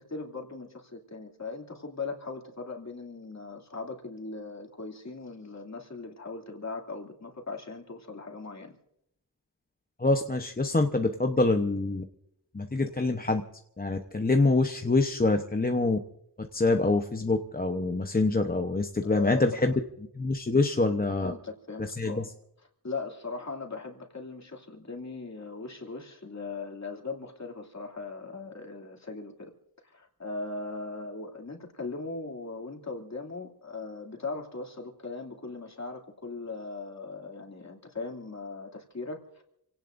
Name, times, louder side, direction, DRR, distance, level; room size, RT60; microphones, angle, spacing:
voice 1, 0.0-8.8 19.0-19.8 21.2-22.3 22.8-29.5 29.8-39.4, left 3 dB, 40° left, 1 dB, 2.9 m, -39 dB
voice 2, 10.0-12.0 12.5-13.4 13.8-16.0 16.4-19.7 20.1-21.3 21.8-22.3, left 2 dB, 20° left, 4 dB, 0.9 m, -25 dB
28.5 x 18.0 x 2.6 m, 0.77 s
wide cardioid pair, 110°, 41 cm